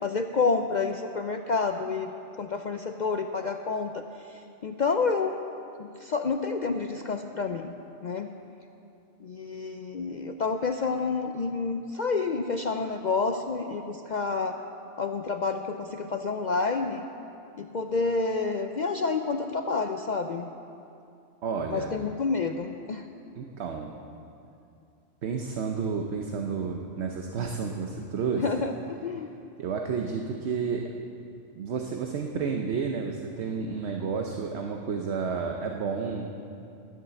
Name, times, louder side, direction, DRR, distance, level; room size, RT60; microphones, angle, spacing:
voice 1, 0.0-4.0 4.3-5.3 5.8-7.8 8.0-8.3 9.2-14.5 15.0-17.0 17.6-20.5 21.7-23.0 28.3-29.3, left 4 dB, 65° left, 5 dB, 0.4 m, -29 dB
voice 2, 21.4-22.0 23.4-23.9 25.2-28.4 29.6-30.9 31.6-36.4, right 5 dB, 60° right, 2 dB, 1.0 m, -31 dB
11.5 x 10.5 x 6.9 m, 2.6 s
omnidirectional pair, 1.4 m